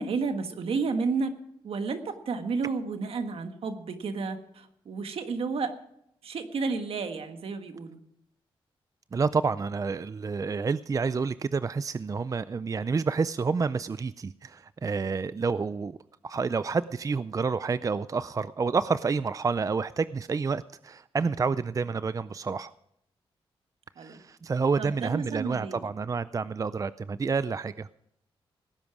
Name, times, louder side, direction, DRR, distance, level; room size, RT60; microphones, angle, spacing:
voice 1, 0.0-1.3 1.6-5.7 6.2-8.0 24.0-24.2 24.8-25.8, right 4 dB, 75° right, 7 dB, 1.6 m, -31 dB
voice 2, 9.1-16.0 16.2-22.7 24.0-27.9, right 5 dB, 35° right, 15 dB, 0.4 m, -29 dB
18.0 x 10.0 x 4.8 m, 0.75 s
cardioid pair, 70°, 10 cm